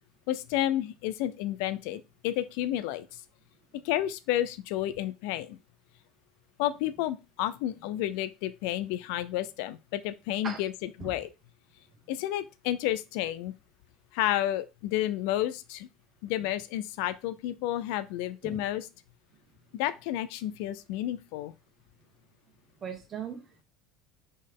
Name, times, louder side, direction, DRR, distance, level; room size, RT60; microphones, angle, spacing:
voice 1, 0.3-3.2 3.7-5.6 6.6-11.3 12.1-13.5 14.1-15.9 16.2-18.9 19.7-21.5, left 13 dB, 75° left, 0.4 m, -31 dB
voice 2, 22.8-23.6, right 6 dB, 30° right, 1.3 m, -38 dB
4.3 x 3.2 x 3.5 m
supercardioid pair, 110°, 0 cm